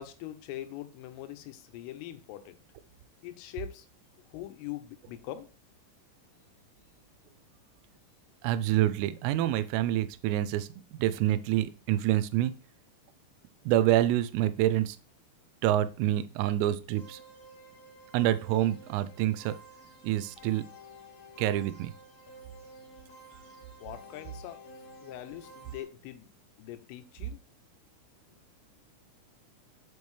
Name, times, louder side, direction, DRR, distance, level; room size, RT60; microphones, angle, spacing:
voice 1, 0.0-2.6 3.2-3.9 4.3-5.5 23.8-24.6 25.0-26.3 26.6-27.4, left 13 dB, 90° left, 3.5 m, -42 dB
voice 2, 8.4-12.5 13.7-15.0 15.6-17.2 18.1-19.6 20.0-20.6 21.4-21.9, right 13 dB, 85° right, 3.2 m, -27 dB
sound 1, 17.0-25.8, equal, 50° left, 2.4 m, -51 dB
7.4 x 5.4 x 3.2 m
omnidirectional pair, 5.8 m